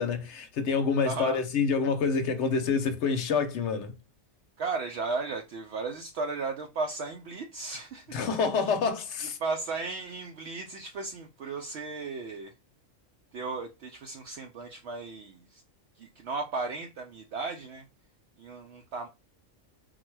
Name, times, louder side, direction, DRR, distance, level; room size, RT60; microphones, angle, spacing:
voice 1, 0.0-3.9 8.1-9.4, left 5 dB, 65° left, 0.9 m, -27 dB
voice 2, 1.1-1.4 4.6-8.2 9.4-12.5 13.3-15.6 16.0-17.8 18.4-19.1, right 4 dB, 65° right, 0.8 m, -35 dB
3.8 x 2.2 x 4.5 m
omnidirectional pair, 1.3 m